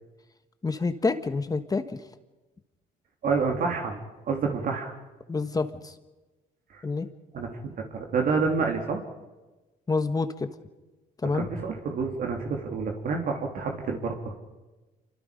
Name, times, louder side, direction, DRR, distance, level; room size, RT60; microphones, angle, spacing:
voice 1, 0.6-2.0 5.3-5.9 6.8-7.1 9.9-10.3 11.2-11.5, left 3 dB, 20° left, 9 dB, 1.4 m, -27 dB
voice 2, 3.2-4.9 6.7-6.8 7.3-7.5 7.9-9.0 11.3-14.3, right 4 dB, 55° right, 1 dB, 3.4 m, -28 dB
28.0 x 25.0 x 5.3 m, 1.1 s
cardioid pair, 110°, 17 cm